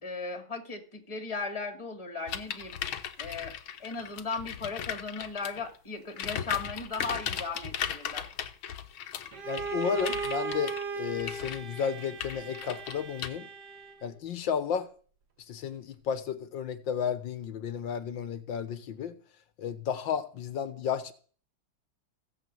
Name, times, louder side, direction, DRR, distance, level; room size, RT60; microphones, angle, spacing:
voice 1, 0.0-2.8 3.2-3.5 3.8-8.3, left 4 dB, 15° left, 2.2 m, -36 dB
sound 1, 2.3-5.7 6.1-13.3, left 9 dB, 90° left, 1.9 m, -37 dB
Bowed string instrument, 9.3-14.1, right 5 dB, 60° right, 2.3 m, -37 dB
voice 2, 9.4-13.5 14.0-14.9 15.5-19.2 19.6-21.1, left 7 dB, 70° left, 1.8 m, -33 dB
17.0 x 7.3 x 7.8 m
omnidirectional pair, 2.2 m